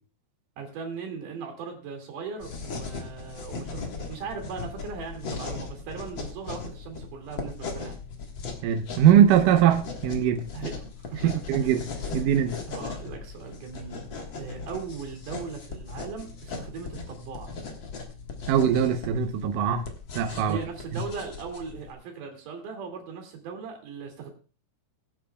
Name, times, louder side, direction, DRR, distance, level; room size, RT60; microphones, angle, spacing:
voice 1, 0.6-8.0 10.5-10.8 11.0-11.8 12.7-14.1 14.4-17.5 20.4-24.3, right 5 dB, 55° right, 2 dB, 3.6 m, -38 dB
sound 1, 2.4-21.9, left 4 dB, 70° left, 1.1 m, -38 dB
voice 2, 8.6-10.4 11.2-11.8 12.1-12.5 18.5-19.9 20.2-20.6 20.9-21.0, right 9 dB, 80° right, 6 dB, 1.9 m, -21 dB
22.0 x 8.6 x 2.3 m, 0.37 s
omnidirectional pair, 4.9 m